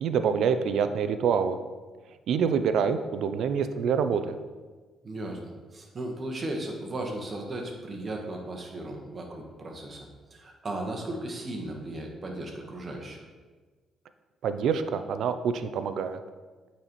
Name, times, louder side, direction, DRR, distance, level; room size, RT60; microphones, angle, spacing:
voice 1, 0.0-1.6 2.3-4.4 14.4-16.2, right 6 dB, 75° right, 10 dB, 0.4 m, -26 dB
voice 2, 5.0-5.4 5.7-13.2, right 1 dB, 35° right, 1 dB, 1.2 m, -36 dB
8.6 x 4.1 x 3.0 m, 1.4 s
cardioid pair, 90°, 0 cm